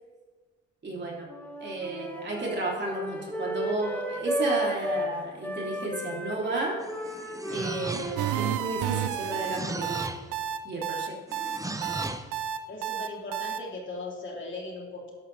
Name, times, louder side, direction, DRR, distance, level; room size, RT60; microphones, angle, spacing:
voice 1, 0.8-1.3 1.6-6.7 7.5-10.0 10.6-11.2, right 2 dB, 35° right, -3 dB, 3.1 m, -32 dB
sound 1, 1.3-5.1 5.4-9.8, equal, 5° left, 1.6 m, -34 dB
sound 2, 6.8-8.4 9.1-10.3 11.3-12.3, right 2 dB, 10° right, 0.8 m, -36 dB
sound 3, 8.2-13.6, right 10 dB, 90° right, 0.7 m, -31 dB
voice 2, 12.7-15.1, left 2 dB, 40° left, -3 dB, 3.2 m, -38 dB
12.5 x 11.5 x 3.4 m, 1.5 s
cardioid pair, 90°, 30 cm